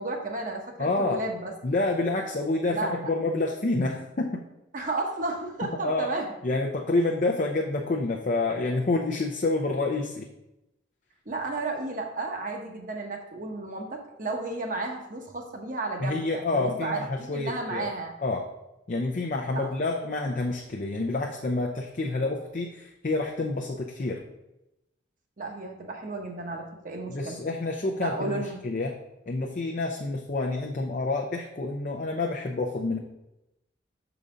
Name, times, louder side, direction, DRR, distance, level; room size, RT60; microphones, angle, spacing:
voice 1, 0.0-1.5 2.7-3.1 4.7-6.3 11.3-18.1 19.5-19.7 25.4-27.4 28.0-28.6, right 2 dB, 45° right, 2 dB, 1.0 m, -33 dB
voice 2, 0.8-1.2 1.6-4.4 5.8-6.1 6.4-10.3 16.0-17.9 18.2-18.5 18.9-24.2 27.1-29.0 29.3-33.0, left 2 dB, 40° left, 0 dB, 0.5 m, -28 dB
6.7 x 4.0 x 5.0 m, 0.92 s
head